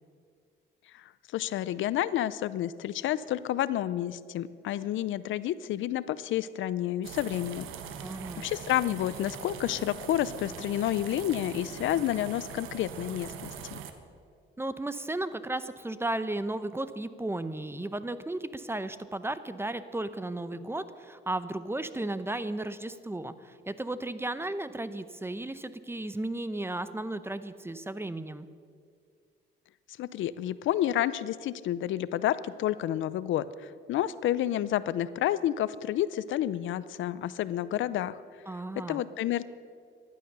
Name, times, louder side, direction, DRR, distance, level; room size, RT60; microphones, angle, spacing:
voice 1, 1.3-7.7 8.4-13.8 30.0-38.2 38.8-39.5, left 12 dB, 75° left, 17 dB, 0.6 m, -30 dB
sound 1, 7.0-13.9, right 8 dB, 90° right, 1.2 m, -42 dB
voice 2, 8.0-8.5 14.6-28.5 38.5-39.0, right 2 dB, 10° right, 13 dB, 0.8 m, -34 dB
15.0 x 11.5 x 6.8 m, 2.2 s
cardioid pair, 90°, 20 cm